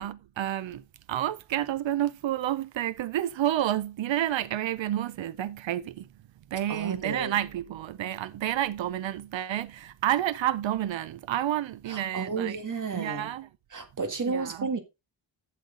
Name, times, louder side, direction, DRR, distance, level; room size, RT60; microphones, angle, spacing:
voice 1, 0.0-6.1 6.5-12.6 12.9-13.5 14.2-14.7, right 12 dB, 80° right, 0.7 m, -30 dB
voice 2, 6.7-7.4 11.9-13.3 13.7-14.8, right 4 dB, 45° right, 1.8 m, -32 dB
12.0 x 6.6 x 3.7 m
wide cardioid pair, 135°, 45 cm